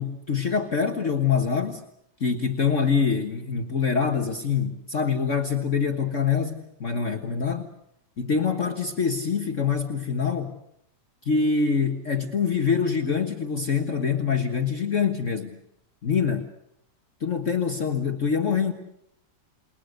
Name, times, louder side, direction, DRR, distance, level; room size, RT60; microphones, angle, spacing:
voice 1, 0.0-1.8 2.2-7.7 8.2-10.6 11.2-15.6 16.0-16.4 17.2-18.7, left 6 dB, 45° left, 5 dB, 1.7 m, -25 dB
29.0 x 21.0 x 6.6 m, 0.76 s
omnidirectional pair, 1.9 m